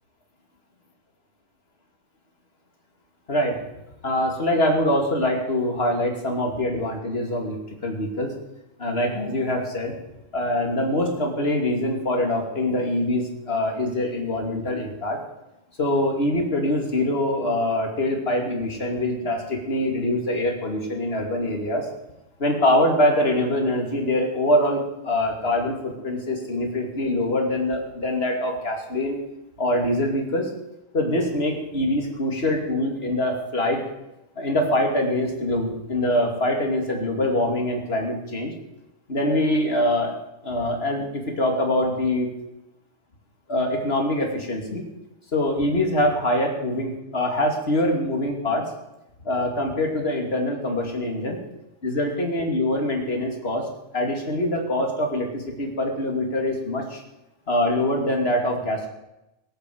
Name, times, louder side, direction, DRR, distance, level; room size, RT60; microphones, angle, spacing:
voice 1, 4.0-7.6 7.8-8.3 8.8-9.9 10.3-15.2 15.8-21.9 22.4-29.2 29.6-30.5 30.9-33.8 34.4-38.5 39.1-40.1 40.4-42.3 43.5-44.8 45.3-48.7 49.2-51.4 51.8-53.7 53.9-57.0 57.5-58.9, left 1 dB, 20° left, 1 dB, 2.4 m, -24 dB
18.0 x 8.6 x 8.0 m, 0.92 s
omnidirectional pair, 3.6 m